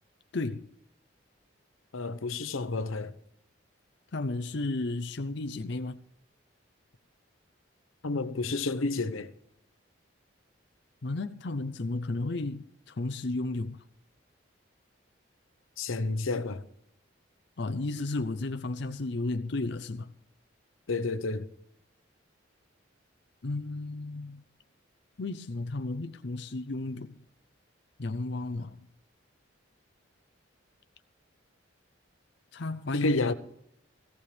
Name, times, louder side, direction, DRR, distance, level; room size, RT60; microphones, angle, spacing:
voice 1, 0.3-0.7 4.1-6.0 11.0-13.8 17.6-20.1 23.4-24.4 25.2-27.2 28.0-28.9 32.5-33.3, left 2 dB, 55° left, 0.6 m, -33 dB
voice 2, 1.9-3.1 8.0-9.3 15.8-16.6 20.9-21.5 32.9-33.3, left 3 dB, 85° left, 0.9 m, -30 dB
17.5 x 15.5 x 3.4 m
head